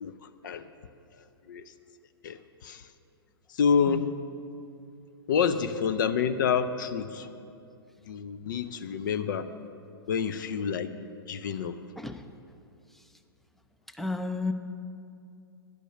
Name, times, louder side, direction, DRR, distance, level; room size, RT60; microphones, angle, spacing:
voice 1, 0.0-0.7 1.5-1.7 2.2-2.9 3.5-4.1 5.3-7.3 8.1-9.5 10.1-11.0 11.3-11.8, left 6 dB, 55° left, 0.6 m, -28 dB
voice 2, 14.0-14.5, left 3 dB, ahead, 0.4 m, -32 dB
10.5 x 9.1 x 6.4 m
figure-of-eight pair, 110°, 13 cm